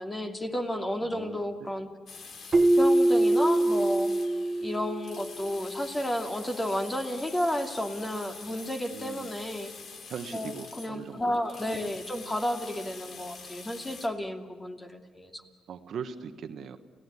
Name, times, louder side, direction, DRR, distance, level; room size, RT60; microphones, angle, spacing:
voice 1, 0.0-1.9 2.6-4.1 4.6-9.7 10.3-15.4, left 1 dB, 15° left, 5 dB, 2.7 m, -32 dB
sound 1, 2.1-14.1, left 5 dB, 55° left, 3.0 m, -46 dB
Keyboard (musical), 2.5-5.3, right 1 dB, 35° right, 1.0 m, -23 dB
voice 2, 8.9-9.3 10.1-11.3 15.7-16.8, right 6 dB, 65° right, 8 dB, 1.4 m, -39 dB
29.0 x 17.0 x 9.9 m, 1.5 s
cardioid pair, 90°, 0 cm